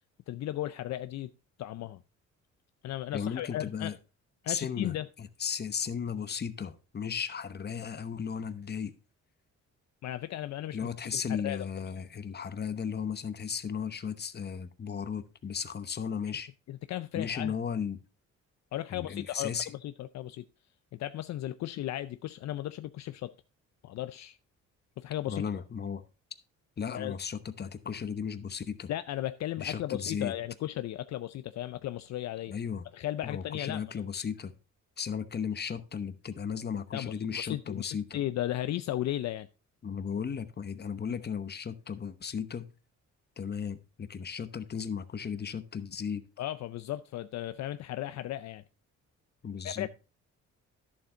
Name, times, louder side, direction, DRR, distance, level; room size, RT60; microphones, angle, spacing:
voice 1, 0.3-1.3 1.6-2.0 2.8-3.9 4.4-5.1 10.0-10.8 11.1-11.6 16.7-17.6 18.7-20.4 20.9-23.3 23.8-24.4 25.0-25.4 26.9-27.2 28.9-32.5 32.9-33.8 36.9-39.5 46.4-48.6 49.6-49.9, left 13 dB, 65° left, 0.5 m, -35 dB
voice 2, 3.1-4.0 4.5-8.9 10.7-16.5 17.1-18.0 18.9-19.7 25.3-26.0 26.8-28.9 29.6-30.3 32.5-32.8 33.2-34.5 35.0-38.2 39.8-42.7 43.4-46.2 49.4-49.9, left 7 dB, 35° left, 1.0 m, -35 dB
11.0 x 7.2 x 3.7 m
cardioid pair, 90°, 30 cm